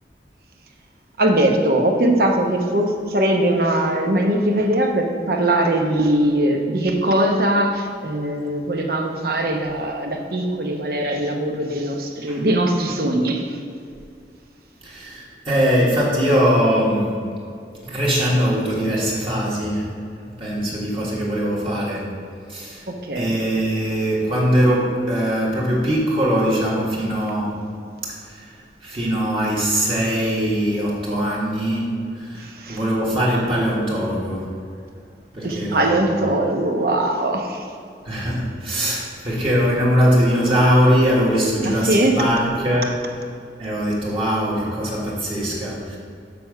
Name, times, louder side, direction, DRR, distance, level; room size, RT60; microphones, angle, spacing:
voice 1, 1.2-13.6 22.9-23.4 32.3-32.8 35.4-37.7 41.6-42.2, right 1 dB, 55° right, 2 dB, 0.9 m, -21 dB
voice 2, 14.8-17.2 17.8-19.9 20.4-22.1 22.5-22.9 23.1-27.6 28.0-34.5 35.3-36.1 38.0-43.0 43.6-46.0, equal, 30° right, -6 dB, 1.5 m, -21 dB
6.9 x 4.6 x 6.4 m, 2.3 s
head